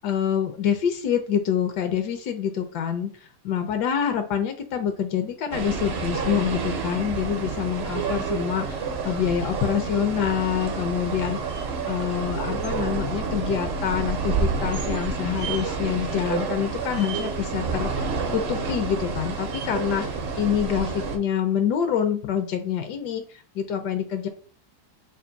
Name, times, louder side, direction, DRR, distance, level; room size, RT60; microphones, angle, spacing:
voice 1, 0.0-3.1 3.4-11.4 11.9-20.0 20.4-23.2 23.5-24.3, left 8 dB, 80° left, 7 dB, 1.2 m, -26 dB
sound 1, 5.5-21.2, right 4 dB, 55° right, 0.7 m, -29 dB
3.4 x 2.5 x 3.9 m, 0.39 s
omnidirectional pair, 1.8 m